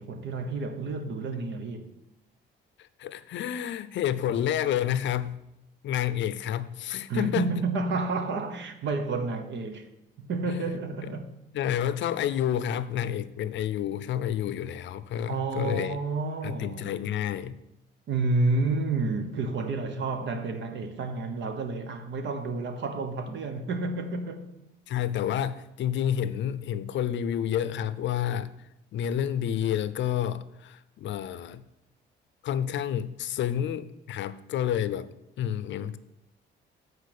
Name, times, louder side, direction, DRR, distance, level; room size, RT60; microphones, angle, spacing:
voice 1, 0.0-1.9 7.1-9.9 10.2-11.3 15.3-16.9 18.1-24.5, right 3 dB, 65° right, 1.1 m, -30 dB
voice 2, 2.8-5.4 5.8-7.5 11.5-16.0 16.4-17.6 24.9-28.5 28.9-31.6 32.4-35.1 35.4-36.0, left 10 dB, 70° left, 0.5 m, -29 dB
8.3 x 4.6 x 6.7 m
cardioid pair, 90°, 20 cm